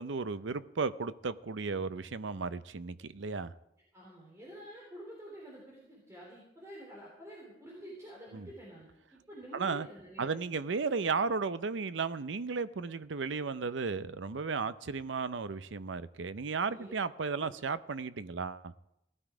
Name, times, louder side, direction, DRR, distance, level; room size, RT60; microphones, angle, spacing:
voice 1, 0.0-3.5 8.3-8.5 9.5-9.9 10.2-18.7, right 4 dB, 85° right, 14 dB, 0.6 m, -34 dB
voice 2, 3.9-10.3 16.6-16.9 17.3-17.5, right 1 dB, 15° right, -4 dB, 3.4 m, -49 dB
17.5 x 12.5 x 5.0 m, 0.85 s
head